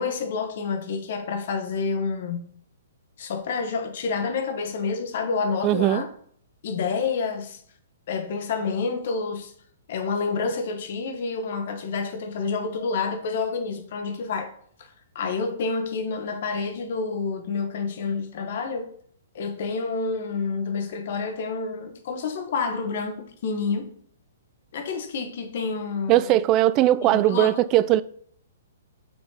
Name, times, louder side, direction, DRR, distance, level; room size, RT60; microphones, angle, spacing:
voice 1, 0.0-2.4 3.2-6.1 6.6-7.6 8.1-9.5 9.9-14.5 14.8-18.9 19.3-23.2 23.4-23.9 24.7-26.4 27.0-27.5, left 4 dB, 55° left, 1.2 m, -28 dB
voice 2, 5.6-6.0 26.1-28.0, right 14 dB, 30° right, 0.3 m, -19 dB
5.6 x 4.4 x 4.8 m
hypercardioid pair, 125°, 0 cm